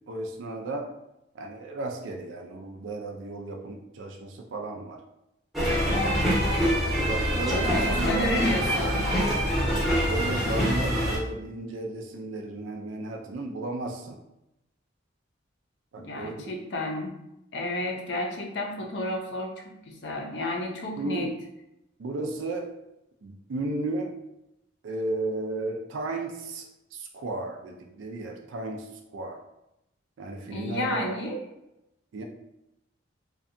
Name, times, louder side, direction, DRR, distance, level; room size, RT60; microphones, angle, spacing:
voice 1, 0.1-0.9 1.3-5.0 7.1-8.3 9.6-14.2 15.9-16.6 21.0-21.3 22.0-22.8 23.2-24.2 24.8-29.4 30.2-31.1 32.1-32.2, right 2 dB, 80° right, 2 dB, 0.4 m, -34 dB
sound 1, 5.5-11.2, equal, ahead, 0.6 m, -25 dB
voice 2, 6.2-6.7 7.0-7.1 7.5-9.1 16.0-17.1 17.5-21.3 30.5-31.5, left 1 dB, 60° left, 1 dB, 0.5 m, -32 dB
2.6 x 2.2 x 2.5 m, 0.87 s
head